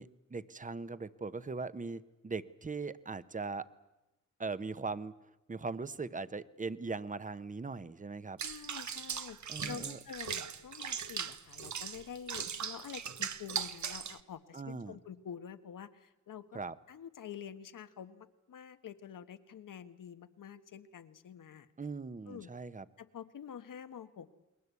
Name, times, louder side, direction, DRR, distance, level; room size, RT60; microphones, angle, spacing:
voice 1, 0.0-3.7 4.4-5.2 5.5-8.4 9.5-10.0 14.5-15.0 16.5-16.8 21.8-22.8, right 4 dB, 25° right, 15 dB, 0.9 m, -40 dB
voice 2, 8.4-16.6 16.9-21.7 22.3-22.5 23.0-24.3, left 8 dB, 90° left, 11 dB, 1.4 m, -48 dB
Water / Bathtub (filling or washing), 8.4-14.2, right 7 dB, 65° right, 1.2 m, -39 dB
29.0 x 22.0 x 8.3 m, 0.97 s
wide cardioid pair, 120°, 31 cm